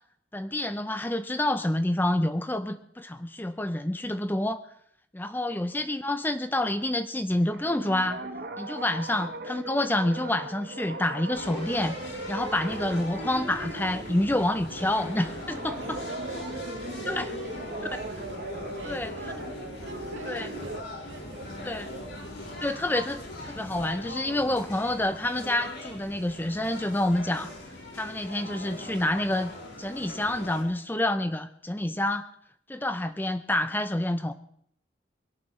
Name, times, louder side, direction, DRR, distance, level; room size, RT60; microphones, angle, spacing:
voice 1, 0.3-4.6 5.1-8.2 8.6-12.0 12.3-16.0 17.1-17.2 18.9-19.1 20.3-20.5 21.6-21.9 22.6-27.5 27.9-29.5 29.8-32.3 32.7-34.3, left 1 dB, 10° left, 10 dB, 0.5 m, -28 dB
voice 2, 5.3-5.7 9.1-9.3 15.8-17.6 17.9-18.1 18.7-19.5 19.8-22.2, right 3 dB, 75° right, 1 dB, 3.1 m, -44 dB
sound 1, 7.3-20.8, right 2 dB, 50° right, 1.0 m, -39 dB
sound 2, 11.3-30.6, left 1 dB, 90° left, 5.4 m, -40 dB
22.0 x 17.5 x 3.2 m, 0.69 s
head